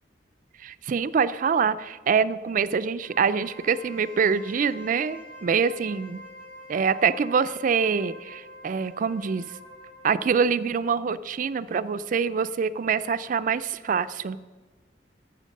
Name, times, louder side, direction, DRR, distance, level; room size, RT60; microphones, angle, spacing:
voice 1, 0.6-6.2 6.7-9.5 10.0-14.4, right 6 dB, 45° right, 14 dB, 0.4 m, -25 dB
Wind instrument woodwind instrument, 2.9-10.4, equal, 60° left, 4.0 m, -46 dB
11.5 x 7.5 x 6.4 m, 1.4 s
head